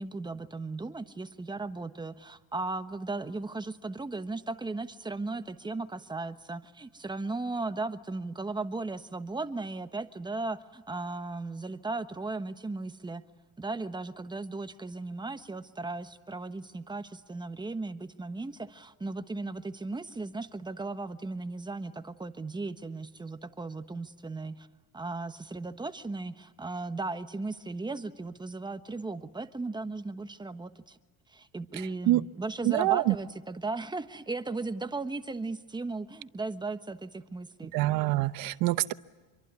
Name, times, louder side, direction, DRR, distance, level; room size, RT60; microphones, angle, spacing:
voice 1, 0.0-13.2 13.6-24.7 24.9-31.0 31.3-37.7, right 3 dB, 15° right, 10 dB, 1.2 m, -36 dB
voice 2, 32.6-33.1 37.7-38.9, right 17 dB, 80° right, 15 dB, 1.0 m, -25 dB
26.0 x 24.0 x 9.5 m, 1.3 s
cardioid pair, 135°, 34 cm